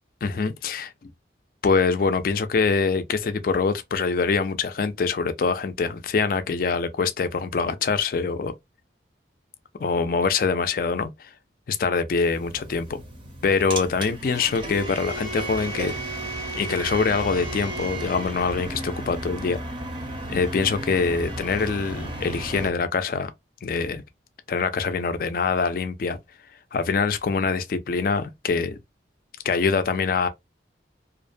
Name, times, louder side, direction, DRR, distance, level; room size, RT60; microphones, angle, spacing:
voice 1, 0.2-1.1 1.6-8.5 9.8-11.3 11.7-13.0 13.4-15.9 16.5-19.6 20.3-23.3 23.6-24.0 24.5-26.2 26.7-28.8 29.4-30.3, left 5 dB, 50° left, 0.3 m, -24 dB
sound 1, 12.2-22.7, right 1 dB, 30° right, 0.6 m, -33 dB
2.4 x 2.1 x 2.5 m
head